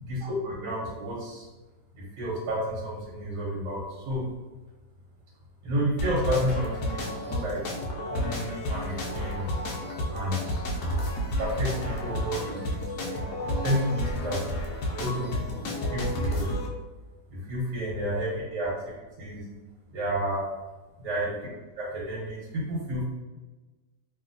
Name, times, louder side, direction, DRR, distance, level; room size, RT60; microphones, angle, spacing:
voice 1, 0.1-1.5 1.9-4.2 5.6-7.6 8.1-9.5 10.1-10.6 11.4-14.4 14.9-16.5 17.3-19.4 19.9-20.4 21.0-21.4 21.8-23.0, equal, 85° right, -6 dB, 1.4 m, -31 dB
sound 1, 6.0-16.7, equal, 85° left, 1.2 m, -31 dB
3.0 x 2.5 x 2.5 m, 1.2 s
omnidirectional pair, 1.7 m